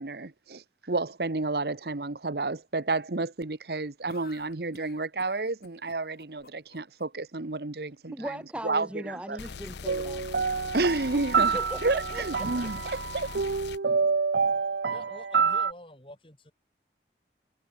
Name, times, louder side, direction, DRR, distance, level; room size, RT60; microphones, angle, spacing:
voice 1, 0.0-8.3 8.6-9.4 10.7-13.3, right 3 dB, 65° right, 1.1 m, -31 dB
sound 1, 4.1-7.1, left 3 dB, 60° left, 2.8 m, -53 dB
voice 2, 8.1-10.2 11.1-12.9, equal, 5° right, 1.5 m, -39 dB
sound 2, 9.4-13.8, left 5 dB, 80° left, 0.7 m, -41 dB
sound 3, 9.8-15.7, right 5 dB, 80° right, 0.7 m, -27 dB
voice 3, 14.9-16.5, left 1 dB, 30° left, 6.4 m, -47 dB
head